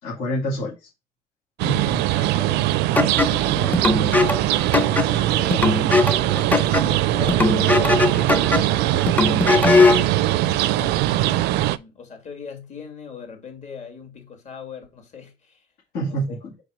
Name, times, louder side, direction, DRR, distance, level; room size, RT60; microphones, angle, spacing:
voice 1, 0.0-0.9 1.6-2.0 5.5-5.6 15.9-16.5, right 1 dB, 85° left, 2.6 m, -28 dB
sound 1, 1.6-11.8, right 15 dB, 90° right, 0.4 m, -21 dB
voice 2, 2.1-2.7 2.9-4.6 5.3-5.9 6.2-8.1 9.0-15.7 16.1-16.4, left 6 dB, 45° left, 2.5 m, -40 dB
sound 2, 3.0-10.1, left 3 dB, 10° left, 0.7 m, -20 dB
4.8 x 4.6 x 5.0 m
cardioid pair, 110°, 17 cm